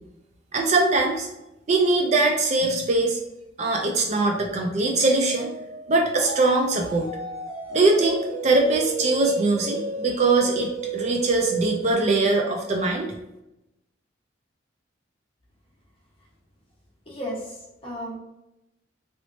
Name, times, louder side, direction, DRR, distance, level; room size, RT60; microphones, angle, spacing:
voice 1, 0.5-1.3 1.7-3.2 3.6-5.5 5.9-7.1 7.7-13.1, right 3 dB, 35° right, 2 dB, 0.4 m, -22 dB
sound 1, 5.3-11.9, right 4 dB, 85° right, 1.0 m, -33 dB
voice 2, 17.1-18.2, equal, 30° left, -5 dB, 1.0 m, -34 dB
3.1 x 3.0 x 2.6 m, 0.91 s
head